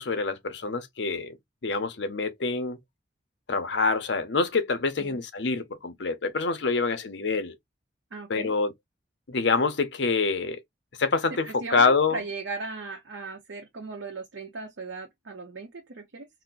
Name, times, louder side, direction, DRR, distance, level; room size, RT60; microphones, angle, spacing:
voice 1, 0.0-1.4 1.6-2.8 3.5-7.5 8.3-8.7 9.3-10.6 11.0-12.2, left 4 dB, 70° left, 0.7 m, -26 dB
voice 2, 8.1-8.5 11.3-16.3, right 3 dB, 90° right, 0.7 m, -37 dB
4.1 x 2.1 x 2.4 m
head